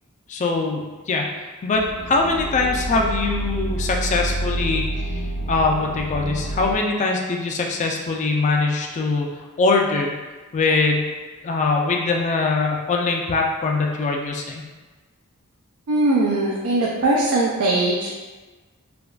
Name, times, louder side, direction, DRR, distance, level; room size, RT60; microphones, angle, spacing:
voice 1, 0.3-10.1 10.5-11.1 11.4-14.6, left 3 dB, 35° left, 1 dB, 0.3 m, -22 dB
sound 1, 1.7-6.7, right 1 dB, 80° left, 0.6 m, -28 dB
voice 2, 15.9-18.1, right 2 dB, 70° right, -3 dB, 0.4 m, -20 dB
3.3 x 2.2 x 2.3 m, 1.3 s
head